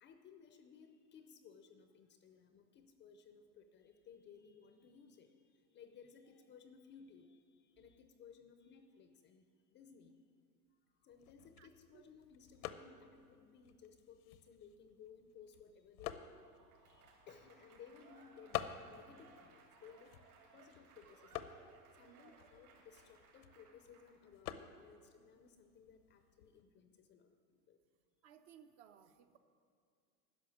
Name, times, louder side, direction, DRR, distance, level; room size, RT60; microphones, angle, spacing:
voice 1, 0.0-10.2 11.0-16.4 16.8-20.2 20.5-21.5 22.0-27.3 27.7-27.8, left 6 dB, 25° left, 8 dB, 0.6 m, -60 dB
sound 1, 11.1-26.6, left 11 dB, 70° left, 0.8 m, -51 dB
Applause / Crowd, 16.2-24.3, right 4 dB, 65° right, 3.2 m, -64 dB
voice 2, 22.0-22.4 28.2-29.4, right 9 dB, 45° right, 8 dB, 0.9 m, -62 dB
11.0 x 6.5 x 9.1 m, 2.2 s
hypercardioid pair, 115°, 47 cm